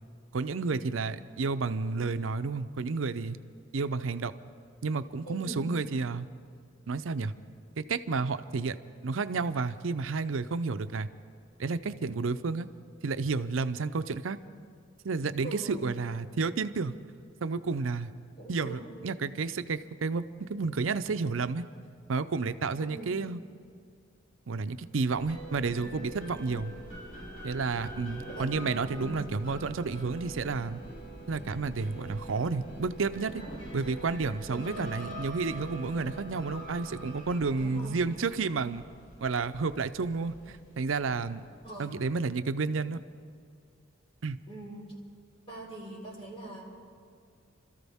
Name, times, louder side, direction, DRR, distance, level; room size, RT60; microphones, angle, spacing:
voice 1, 0.3-3.4 3.7-4.3 4.8-6.3 6.9-7.3 7.8-8.8 9.0-11.1 11.6-12.7 13.0-14.4 15.0-16.9 17.4-18.1 18.5-21.6 22.1-23.4 24.5-26.7 27.4-30.8 31.3-33.4 33.7-38.8 39.2-41.4 41.8-43.0 44.2-44.4, right 4 dB, 85° right, 12 dB, 0.6 m, -31 dB
voice 2, 5.2-5.7 15.4-16.0 18.4-19.0 22.8-23.2 28.3-29.2 34.5-35.0 37.6-38.1 41.6-42.0 44.5-45.0 45.5-46.6, right 1 dB, 30° left, -2 dB, 3.8 m, -42 dB
sound 1, 25.1-41.7, right 1 dB, 80° left, 4.0 m, -44 dB
29.0 x 13.5 x 3.6 m, 2.2 s
head